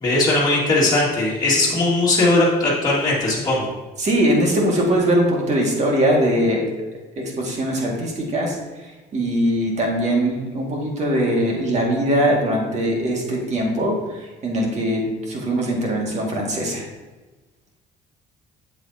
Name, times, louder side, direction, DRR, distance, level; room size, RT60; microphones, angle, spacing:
voice 1, 0.0-3.7, left 2 dB, 20° left, -7 dB, 2.1 m, -19 dB
voice 2, 4.0-6.6 7.2-8.6 9.1-16.8, right 1 dB, 45° right, -1 dB, 2.1 m, -21 dB
7.8 x 7.4 x 2.8 m, 1.2 s
cardioid pair, 110°, 17 cm